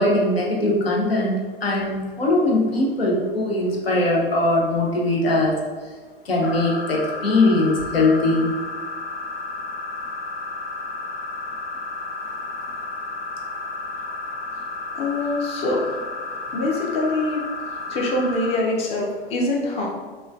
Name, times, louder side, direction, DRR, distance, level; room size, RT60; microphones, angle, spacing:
voice 1, 0.0-5.5 6.3-8.5, left 2 dB, 80° left, -2 dB, 0.6 m, -20 dB
sound 1, 6.4-18.5, left 3 dB, 55° left, 1.1 m, -32 dB
voice 2, 15.0-15.8 16.5-17.4 17.9-19.9, left 2 dB, 20° left, -1 dB, 0.4 m, -24 dB
3.0 x 2.2 x 2.4 m, 1.5 s
figure-of-eight pair, 85°, 30 cm